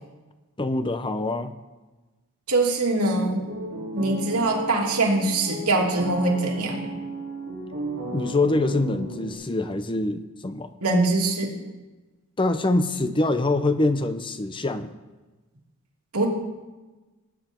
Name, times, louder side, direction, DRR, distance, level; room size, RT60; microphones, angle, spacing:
voice 1, 0.6-1.5 8.1-10.7 12.4-14.9, left 2 dB, 20° left, 10 dB, 0.6 m, -24 dB
voice 2, 2.5-3.4 3.9-6.9 10.8-11.5 16.1-16.3, right 2 dB, 80° right, -1 dB, 2.8 m, -23 dB
sound 1, 3.1-9.3, right 2 dB, 55° right, 4.7 m, -35 dB
19.5 x 9.4 x 4.5 m, 1.2 s
head